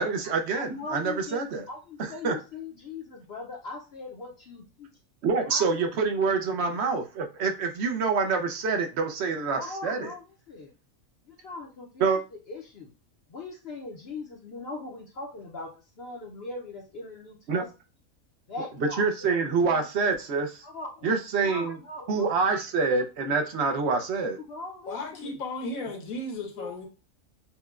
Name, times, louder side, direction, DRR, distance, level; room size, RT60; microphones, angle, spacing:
voice 1, 0.0-1.7 2.0-2.4 5.2-10.1 12.0-12.2 17.5-17.6 19.0-20.6 21.0-21.8 22.1-24.4, right 4 dB, 60° right, 0.8 m, -26 dB
voice 2, 0.6-4.9 5.5-5.7 9.5-10.7 11.3-12.2 12.5-12.9 13.3-15.7 16.0-17.7 18.5-19.1 19.5-19.8 20.6-21.1 21.4-22.4 24.5-25.3 26.5-26.9, left 3 dB, 60° left, 0.7 m, -40 dB
voice 3, 24.9-26.9, left 2 dB, 80° left, 1.3 m, -35 dB
5.8 x 2.1 x 2.4 m
omnidirectional pair, 1.4 m